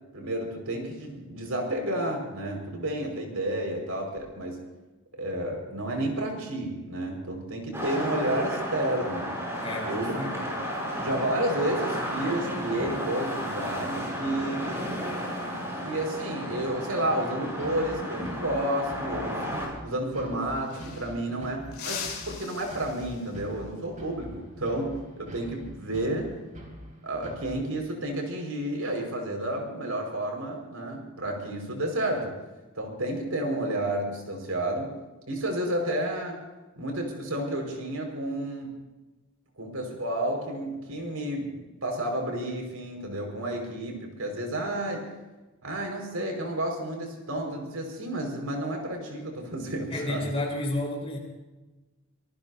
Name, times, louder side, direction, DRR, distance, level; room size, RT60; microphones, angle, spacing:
voice 1, 0.1-4.6 5.2-9.3 9.9-10.4 11.0-14.7 15.8-26.4 27.0-32.3 32.8-34.9 35.3-36.4 36.8-38.7 39.6-45.0 45.6-50.2, right 1 dB, 85° right, 2 dB, 5.4 m, -31 dB
sound 1, 7.7-19.7, equal, 10° right, 7.1 m, -33 dB
voice 2, 9.6-10.4 49.9-51.2, left 1 dB, 25° left, 0 dB, 4.6 m, -31 dB
sound 2, 17.6-27.6, equal, 35° right, 4.1 m, -45 dB
sound 3, 20.1-20.2 20.4-21.3 21.7-23.5 26.0-26.3 27.7-28.2, left 7 dB, 45° left, 3.4 m, -40 dB
26.0 x 19.5 x 2.8 m, 1.1 s
head